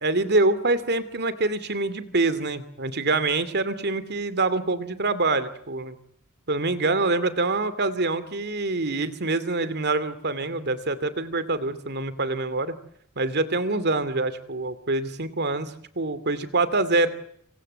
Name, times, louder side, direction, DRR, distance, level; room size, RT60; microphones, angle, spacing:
voice 1, 0.0-6.0 6.5-12.7 13.2-17.1, right 2 dB, 50° right, 14 dB, 2.6 m, -25 dB
27.0 x 24.5 x 8.0 m, 0.69 s
head